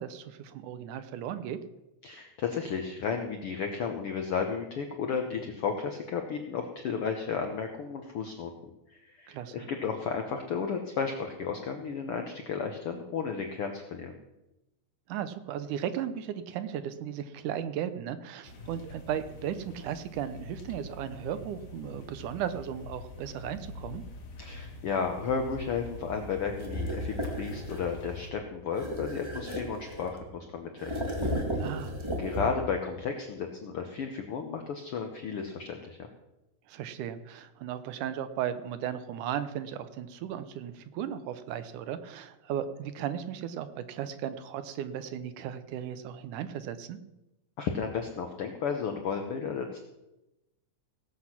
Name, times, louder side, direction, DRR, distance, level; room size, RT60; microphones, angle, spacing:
voice 1, 0.0-1.6 9.3-9.7 15.1-24.0 31.6-32.0 36.7-47.0, right 9 dB, 75° right, 12 dB, 2.1 m, -36 dB
voice 2, 2.0-8.5 8.9-14.1 24.4-31.5 32.2-36.0 47.6-49.8, left 6 dB, 90° left, 4 dB, 1.2 m, -33 dB
sound 1, 18.4-28.3, left 3 dB, 60° left, 3.4 m, -44 dB
sound 2, 26.6-27.9 28.7-30.3 30.8-32.8, equal, 15° right, 0.8 m, -34 dB
17.5 x 7.9 x 5.9 m, 0.96 s
omnidirectional pair, 4.0 m